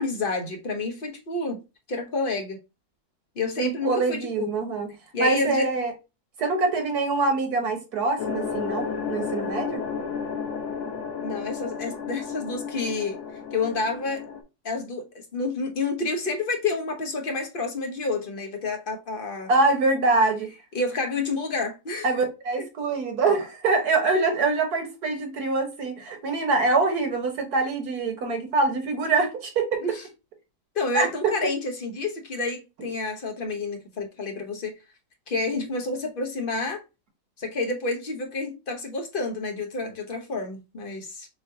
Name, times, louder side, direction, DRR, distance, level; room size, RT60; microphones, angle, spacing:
voice 1, 0.0-1.6 1.9-2.6 3.4-4.5 5.1-5.7 11.2-13.2 13.5-14.2 14.6-15.0 15.3-19.5 20.7-22.1 22.6-22.7 29.8-29.9 30.7-34.7 35.3-36.8 37.4-41.3, left 3 dB, 40° left, 0.9 m, -29 dB
voice 2, 3.6-4.9 5.2-5.9 6.4-9.8 19.5-20.5 22.0-29.8 30.9-31.4, right 3 dB, 75° right, 1.7 m, -24 dB
sound 1, 8.2-14.4, left 6 dB, 65° left, 1.1 m, -32 dB
6.5 x 2.8 x 2.7 m
omnidirectional pair, 1.7 m